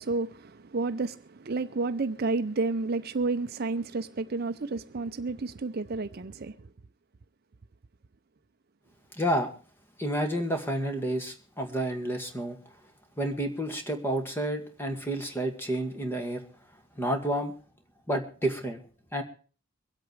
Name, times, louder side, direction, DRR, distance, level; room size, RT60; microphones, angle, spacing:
voice 1, 0.0-6.7, right 3 dB, 50° right, 0.6 m, -31 dB
voice 2, 9.1-9.5 10.0-12.6 13.2-16.4 17.0-17.5 18.1-18.8 19.1-19.2, right 1 dB, 10° left, 2.0 m, -30 dB
23.5 x 8.3 x 4.7 m
head